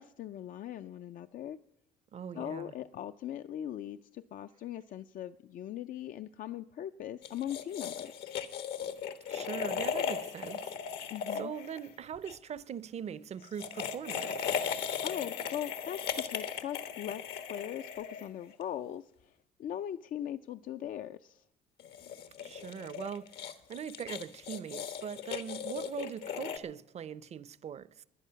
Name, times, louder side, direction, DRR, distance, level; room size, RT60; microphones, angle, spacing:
voice 1, 0.0-1.6 2.3-8.4 11.1-11.5 15.0-16.0 16.3-17.2 17.5-21.4, left 10 dB, 55° left, 0.5 m, -40 dB
voice 2, 2.1-2.7 9.3-10.8 11.3-14.6 22.4-23.3 23.7-28.0, right 8 dB, 40° right, 0.6 m, -41 dB
sound 1, 7.2-12.4 13.4-18.6 21.8-26.6, left 7 dB, 75° left, 1.2 m, -37 dB
17.5 x 11.0 x 5.7 m
cardioid pair, 110°, 17 cm